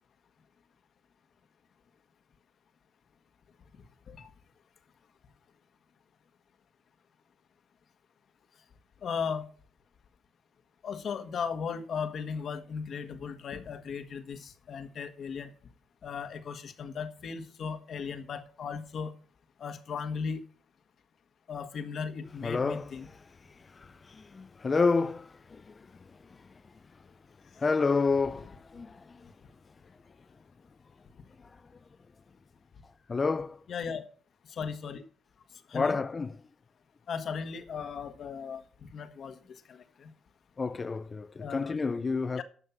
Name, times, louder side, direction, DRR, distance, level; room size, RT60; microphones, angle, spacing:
voice 1, 9.0-9.4 10.8-15.5 16.0-19.1 19.6-20.4 21.5-23.1 33.7-34.0 34.5-35.0 35.7-36.0 37.1-38.6 38.9-39.4 39.7-40.1 41.4-41.8 42.4-42.5, left 6 dB, 60° left, 1.7 m, -36 dB
voice 2, 22.4-22.9 24.1-25.7 27.6-29.0 33.1-33.6 35.7-36.4 40.6-42.4, left 4 dB, 30° left, 0.8 m, -29 dB
11.5 x 6.7 x 7.3 m
cardioid pair, 90°, 0 cm